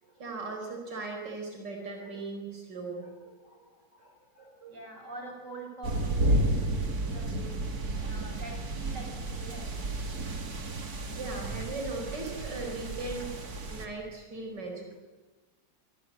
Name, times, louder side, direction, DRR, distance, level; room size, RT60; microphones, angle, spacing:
voice 1, 0.0-4.7 11.2-13.3 13.7-14.9, right 3 dB, 90° right, 2 dB, 4.9 m, -39 dB
voice 2, 4.7-9.7, right 2 dB, 45° right, 1 dB, 7.7 m, -45 dB
sound 1, 5.8-13.9, right 1 dB, 60° right, 2.8 m, -32 dB
26.5 x 25.0 x 8.4 m, 1.2 s
omnidirectional pair, 1.8 m